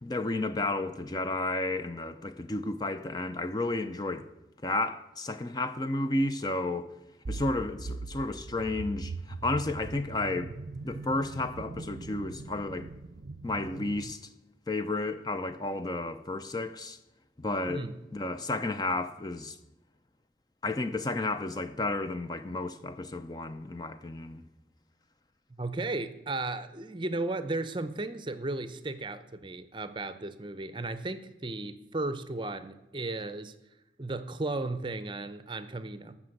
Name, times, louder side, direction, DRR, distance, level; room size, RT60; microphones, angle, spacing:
voice 1, 0.0-4.3 4.6-6.9 7.3-10.5 10.8-12.9 13.4-14.3 14.7-17.0 17.4-17.9 18.1-19.6 20.6-24.4, left 2 dB, 25° left, 0.5 m, -32 dB
sound 1, 7.2-14.1, right 3 dB, 65° right, 0.5 m, -41 dB
voice 2, 25.6-33.5 34.0-36.1, right 2 dB, 25° right, 0.6 m, -35 dB
14.0 x 6.0 x 7.7 m
head